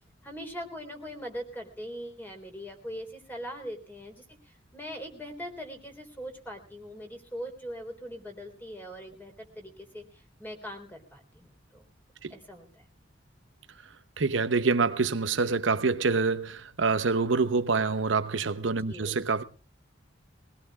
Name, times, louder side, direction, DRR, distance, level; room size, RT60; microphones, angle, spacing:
voice 1, 0.0-11.8 12.3-12.8 18.9-19.2, equal, 10° left, 3.7 m, -41 dB
voice 2, 14.2-19.4, right 4 dB, 75° right, 0.8 m, -26 dB
23.0 x 18.0 x 2.4 m
head